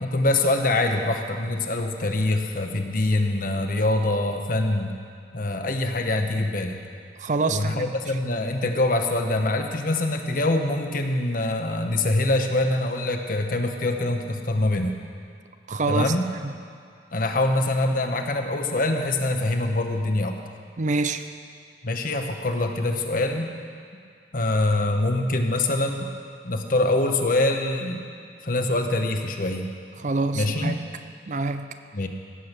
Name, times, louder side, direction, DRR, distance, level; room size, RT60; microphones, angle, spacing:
voice 1, 0.0-4.9 5.3-6.8 7.5-15.0 15.9-16.3 17.1-20.3 21.8-23.5 24.3-26.1 26.4-28.0 28.4-29.7 30.3-30.7 31.9-32.1, left 2 dB, 50° left, 4 dB, 1.1 m, -24 dB
voice 2, 7.2-7.9 15.7-16.1 16.4-16.5 20.8-21.2 30.0-30.8 31.3-31.7, right 3 dB, 45° right, 9 dB, 0.6 m, -26 dB
17.0 x 7.8 x 6.8 m, 2.3 s
head